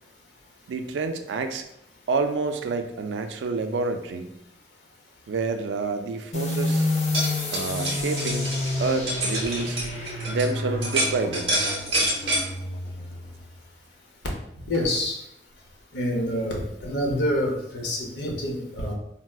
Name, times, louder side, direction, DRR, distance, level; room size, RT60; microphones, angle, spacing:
voice 1, 0.7-1.6 2.1-4.3 5.3-6.9 7.5-8.5 8.8-9.8 10.3-11.5 12.3-12.5, right 4 dB, 80° right, 7 dB, 0.3 m, -28 dB
sound 1, 6.3-13.6, left 2 dB, 35° left, 0.5 m, -29 dB
sound 2, 6.9-10.5 10.8-12.4, right 1 dB, 30° right, 0.7 m, -27 dB
voice 2, 14.6-15.2 15.9-18.9, left 1 dB, 75° left, -1 dB, 0.7 m, -27 dB
4.3 x 2.0 x 2.3 m, 0.79 s
head